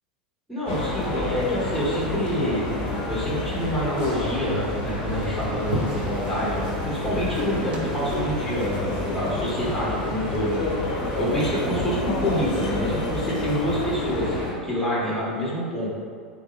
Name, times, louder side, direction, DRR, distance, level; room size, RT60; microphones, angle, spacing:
voice 1, 0.5-2.7 3.1-10.9 11.2-15.9, equal, 5° left, -8 dB, 1.3 m, -27 dB
sound 1, 0.6-14.5, left 2 dB, 55° left, 1.0 m, -29 dB
sound 2, 0.7-14.0, left 1 dB, 90° left, 0.6 m, -38 dB
sound 3, 4.2-10.5, right 3 dB, 25° right, 0.5 m, -38 dB
3.6 x 2.2 x 3.1 m, 2.1 s
hypercardioid pair, 85°, 4 cm